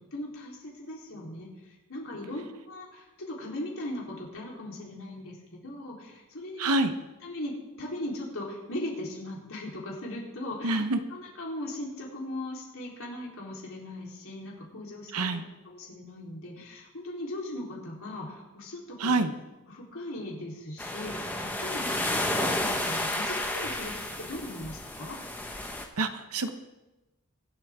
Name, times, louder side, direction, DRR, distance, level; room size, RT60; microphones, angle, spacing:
voice 1, 0.1-5.4 5.6-6.7 7.2-10.8 11.1-19.1 19.7-25.2, left 1 dB, 65° left, -3 dB, 3.6 m, -39 dB
voice 2, 6.6-6.9 10.6-11.0 15.1-15.4 19.0-19.3 26.0-26.5, right 2 dB, 80° right, 9 dB, 1.0 m, -26 dB
sound 1, 20.8-25.8, left 1 dB, 10° left, 1.2 m, -31 dB
24.0 x 8.4 x 3.6 m, 1.1 s
head